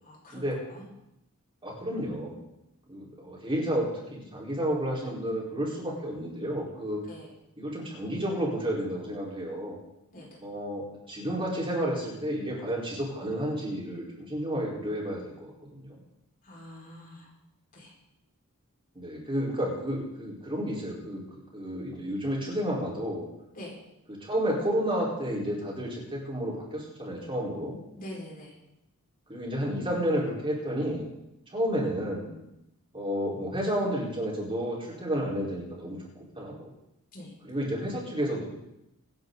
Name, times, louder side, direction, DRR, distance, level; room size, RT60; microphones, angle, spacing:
voice 1, 0.0-0.4 0.7-0.8 7.1-7.3 10.1-10.3 16.5-17.3 17.7-17.9 23.5-23.8 28.0-28.5 37.1-37.3, left 1 dB, 40° left, -3 dB, 5.2 m, -44 dB
voice 2, 1.6-2.4 2.9-7.0 7.6-9.8 10.4-16.0 18.9-21.2 21.5-23.3 24.1-27.8 29.3-31.1 31.5-32.3 32.9-36.7 37.4-38.5, equal, 25° right, -4 dB, 4.4 m, -31 dB
24.5 x 9.7 x 4.0 m, 0.86 s
head